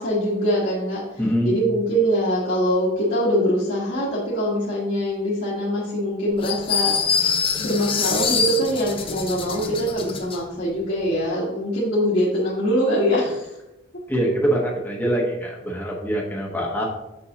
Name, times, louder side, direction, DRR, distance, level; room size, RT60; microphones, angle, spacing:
voice 1, 0.0-7.3 7.6-13.5, equal, 55° left, -8 dB, 1.5 m, -23 dB
voice 2, 1.2-1.6 14.1-16.8, right 1 dB, 10° left, -3 dB, 1.0 m, -24 dB
sound 1, 6.4-10.4, left 5 dB, 25° left, 0.5 m, -24 dB
6.8 x 6.3 x 2.8 m, 0.94 s
head